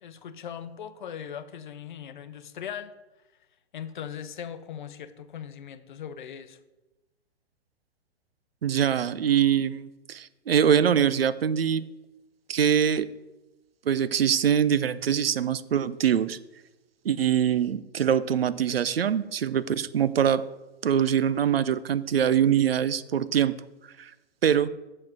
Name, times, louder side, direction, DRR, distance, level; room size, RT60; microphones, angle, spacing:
voice 1, 0.0-2.9 3.7-6.6, left 8 dB, 45° left, 11 dB, 0.7 m, -39 dB
voice 2, 8.6-11.9 12.5-13.1 13.9-16.4 17.0-20.4 20.8-23.6 24.0-24.1 24.4-24.7, right 8 dB, 65° right, 16 dB, 0.5 m, -23 dB
7.4 x 6.5 x 5.8 m, 1.1 s
figure-of-eight pair, 115°, 33 cm